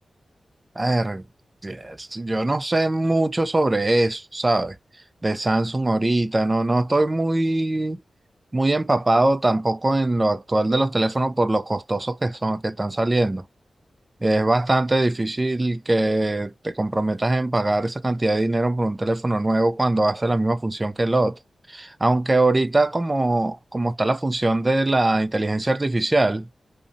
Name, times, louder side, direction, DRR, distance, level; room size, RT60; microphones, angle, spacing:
voice 1, 0.8-1.2 1.6-4.8 5.2-8.0 8.5-13.4 14.2-21.4 21.7-26.5, right 2 dB, 25° right, 0.3 m, -22 dB
2.5 x 2.1 x 2.5 m
cardioid pair, 70°, 0 cm